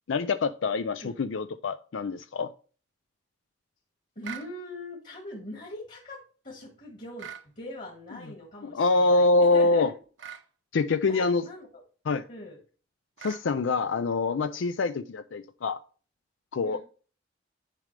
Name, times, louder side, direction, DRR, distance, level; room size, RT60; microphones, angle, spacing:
voice 1, 0.1-2.5 8.6-9.9 10.7-11.4 12.1-12.2 13.2-15.8 16.5-16.8, left 3 dB, 80° left, 0.5 m, -25 dB
voice 2, 4.2-9.9 11.0-11.8 12.3-12.6 13.9-14.1 16.6-16.8, left 1 dB, 45° left, 1.9 m, -42 dB
sound 1, 4.2-4.5 7.2-7.5 10.2-10.5 13.2-13.5, right 8 dB, 80° right, 0.9 m, -41 dB
10.5 x 5.1 x 3.3 m
head